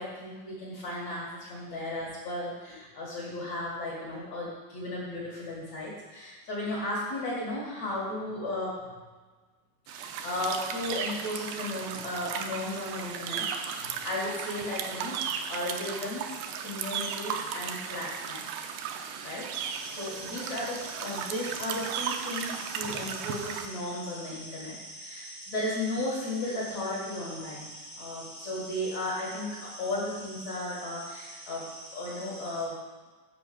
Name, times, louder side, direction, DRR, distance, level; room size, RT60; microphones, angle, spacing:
voice 1, 0.0-8.8 9.9-15.2 15.5-16.3 16.6-18.5 19.2-19.5 19.9-27.7 28.0-32.8, left 1 dB, 50° left, -7 dB, 2.6 m, -35 dB
sound 1, 9.9-23.7, right 7 dB, 80° right, 2.5 m, -36 dB
sound 2, 19.7-32.6, equal, 30° right, 0.5 m, -45 dB
7.7 x 5.5 x 7.6 m, 1.3 s
omnidirectional pair, 5.1 m